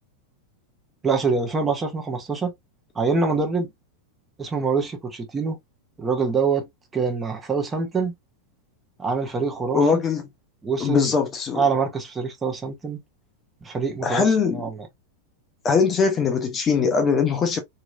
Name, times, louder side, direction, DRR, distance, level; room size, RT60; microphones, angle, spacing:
voice 1, 1.0-2.5 2.9-3.7 4.4-5.6 6.0-6.7 6.9-8.1 9.0-10.0 10.6-11.1 11.5-13.0 13.6-14.8, right 4 dB, 15° right, 1.0 m, -25 dB
voice 2, 9.7-10.2 10.8-11.6 14.0-14.6 15.6-17.6, left 5 dB, 25° left, 0.7 m, -21 dB
3.0 x 2.9 x 2.3 m
figure-of-eight pair, 90°, 0 cm